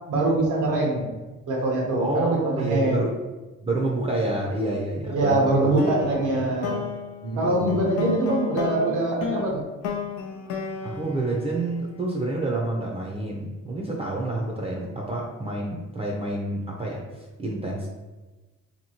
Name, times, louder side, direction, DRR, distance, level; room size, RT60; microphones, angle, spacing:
voice 1, 0.1-1.1 1.5-3.0 5.1-6.8 7.4-9.6, right 2 dB, 90° right, -1 dB, 0.9 m, -23 dB
voice 2, 2.0-3.2 3.6-5.8 6.3-6.5 7.2-7.8 10.8-17.9, right 2 dB, 20° right, -2 dB, 0.5 m, -28 dB
sound 1, 5.8-12.2, left 6 dB, 85° left, 0.5 m, -33 dB
2.9 x 2.7 x 2.7 m, 1.2 s
cardioid pair, 90°, 30 cm